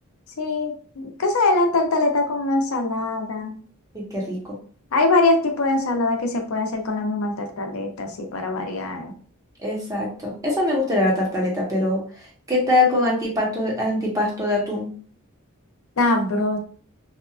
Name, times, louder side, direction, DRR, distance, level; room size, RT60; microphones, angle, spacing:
voice 1, 0.4-3.6 4.9-9.1 16.0-16.6, left 2 dB, 90° left, 4 dB, 0.6 m, -22 dB
voice 2, 3.9-4.6 9.6-14.9, left 2 dB, 15° right, -3 dB, 0.8 m, -23 dB
2.8 x 2.3 x 2.3 m, 0.44 s
head